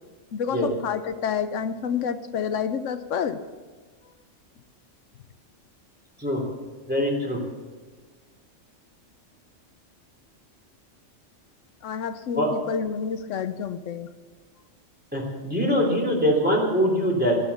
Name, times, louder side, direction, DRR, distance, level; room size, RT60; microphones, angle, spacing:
voice 1, 0.3-3.4 11.8-14.1, left 7 dB, 85° left, 10 dB, 1.1 m, -29 dB
voice 2, 6.9-7.4 12.3-12.5 15.1-17.4, equal, 10° right, -1 dB, 3.2 m, -23 dB
14.0 x 9.9 x 7.0 m, 1.4 s
omnidirectional pair, 1.3 m